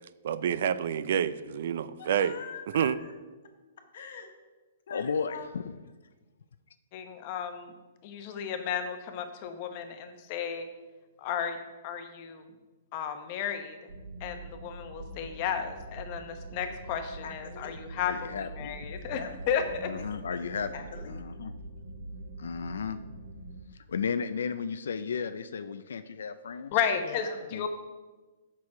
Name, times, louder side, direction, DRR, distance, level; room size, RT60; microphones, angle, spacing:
voice 1, 0.2-2.3 2.7-3.0, right 9 dB, 60° right, 15 dB, 0.4 m, -28 dB
voice 2, 2.0-3.1 3.9-4.3 4.9-5.5 17.2-17.7 19.1-19.3 20.3-21.2 27.0-27.4, left 6 dB, 60° left, 5 dB, 1.3 m, -43 dB
voice 3, 4.9-5.7 18.0-18.9 19.8-20.7 21.1-21.5 22.4-23.0 23.9-26.7 27.5-27.7, left 6 dB, 85° left, 11 dB, 0.4 m, -34 dB
voice 4, 6.9-7.7 8.0-10.7 11.2-11.6 11.8-12.4 12.9-13.8 14.2-19.2 19.5-19.9 26.7-27.7, left 8 dB, 35° left, 7 dB, 0.9 m, -33 dB
sound 1, 13.9-23.6, right 2 dB, 85° right, 0.8 m, -44 dB
7.3 x 6.2 x 4.8 m, 1.2 s
hypercardioid pair, 155°, 0 cm